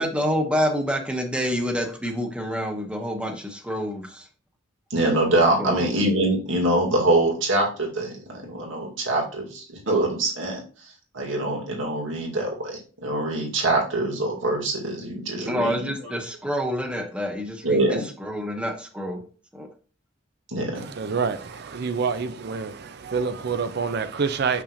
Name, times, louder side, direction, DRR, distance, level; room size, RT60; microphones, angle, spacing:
voice 1, 0.0-4.2 5.6-5.9 15.5-19.2 19.5-19.7, equal, 5° right, 1.0 m, -27 dB
voice 2, 4.9-10.6 11.1-16.1 17.6-18.0 20.5-20.8, right 2 dB, 85° right, 2.3 m, -24 dB
voice 3, 20.7-24.6, right 5 dB, 55° right, 0.5 m, -27 dB
6.5 x 5.8 x 2.5 m
head